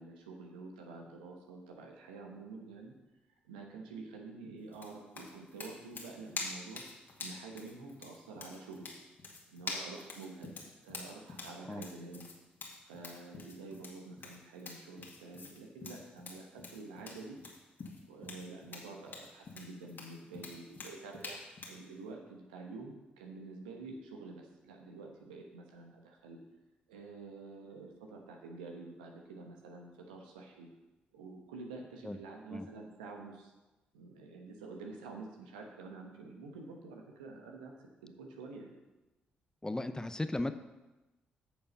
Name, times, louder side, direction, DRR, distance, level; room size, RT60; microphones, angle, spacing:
voice 1, 0.0-2.9 3.5-6.8 7.2-8.9 9.5-10.5 10.8-12.3 12.9-17.4 18.1-21.4 21.7-26.4 26.9-30.7 31.1-33.5 33.9-37.8 38.0-38.7, right 3 dB, 85° right, 1 dB, 1.2 m, -48 dB
sound 1, 4.7-21.8, left 3 dB, 50° left, 1.9 m, -46 dB
voice 2, 39.6-40.5, left 2 dB, 15° left, 10 dB, 0.7 m, -36 dB
8.2 x 6.7 x 5.4 m, 1.1 s
hypercardioid pair, 40°, 4 cm